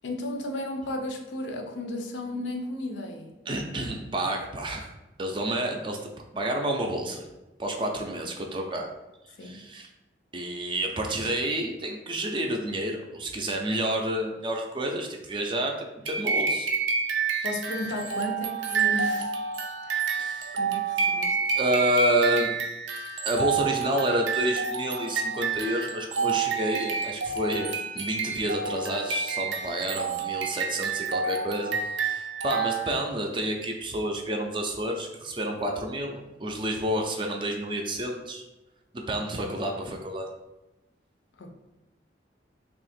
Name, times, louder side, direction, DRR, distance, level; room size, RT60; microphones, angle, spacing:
voice 1, 0.0-3.3 9.4-9.6 17.4-19.3 19.9-20.2 20.5-21.4 41.4-41.5, left 1 dB, 80° left, 4 dB, 0.5 m, -34 dB
voice 2, 3.5-4.9 5.2-7.2 7.6-8.9 9.4-9.9 10.3-15.8 16.0-16.7 20.2-20.5 21.6-22.5 23.2-27.7 27.9-38.4 39.1-40.3, right 1 dB, 25° right, 2 dB, 0.4 m, -29 dB
sound 1, 16.1-33.1, right 5 dB, 85° right, 0.4 m, -29 dB
2.8 x 2.5 x 4.1 m, 1.0 s
head